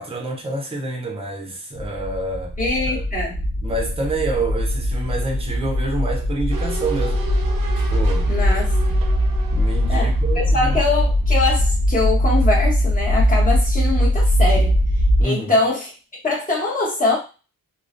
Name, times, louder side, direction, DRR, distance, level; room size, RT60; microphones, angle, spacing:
voice 1, 0.0-2.5 2.9-3.0 3.6-7.3 7.9-8.3 9.5-10.8 15.2-15.6, right 2 dB, 15° right, 2 dB, 0.5 m, -27 dB
sound 1, 1.8-15.2, equal, 45° left, 0.5 m, -20 dB
voice 2, 2.6-3.4 8.3-8.7 9.9-14.8 15.2-15.9 16.2-17.2, left 2 dB, 25° left, -4 dB, 1.0 m, -23 dB
sound 2, 6.5-11.5 11.8-11.9, right 2 dB, 70° right, 0.5 m, -35 dB
2.3 x 2.2 x 2.4 m, 0.32 s
wide cardioid pair, 150°, 35 cm